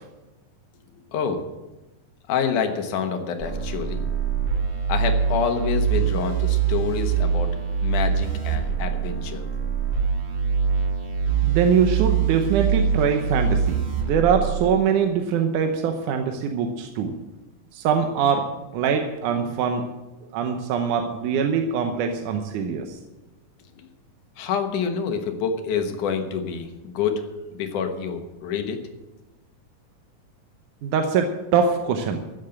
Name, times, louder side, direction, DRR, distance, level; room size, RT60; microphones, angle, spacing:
voice 1, 1.1-1.4 2.3-4.0 4.9-7.5 7.8-9.4 24.4-27.2 27.5-28.8, left 6 dB, 70° left, 6 dB, 2.6 m, -27 dB
sound 1, 3.4-14.8, right 7 dB, 90° right, 0.5 m, -24 dB
voice 2, 11.4-17.1 17.7-18.4 18.7-19.8 20.3-22.8 30.8-31.3 31.5-32.2, right 6 dB, 70° right, 4 dB, 2.2 m, -23 dB
14.5 x 7.3 x 7.9 m, 1.1 s
omnidirectional pair, 4.0 m